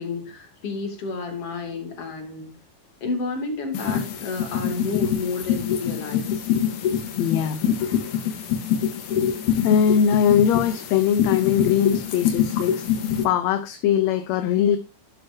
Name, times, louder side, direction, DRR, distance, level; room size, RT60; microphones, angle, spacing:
voice 1, 0.0-2.5 3.0-6.5, left 4 dB, 50° left, 4 dB, 3.6 m, -30 dB
sound 1, 3.7-13.2, left 9 dB, 90° left, 3.0 m, -25 dB
voice 2, 7.2-7.6 9.6-12.9 13.2-14.8, left 8 dB, 70° left, 10 dB, 1.9 m, -21 dB
12.0 x 9.5 x 2.8 m, 0.27 s
omnidirectional pair, 3.4 m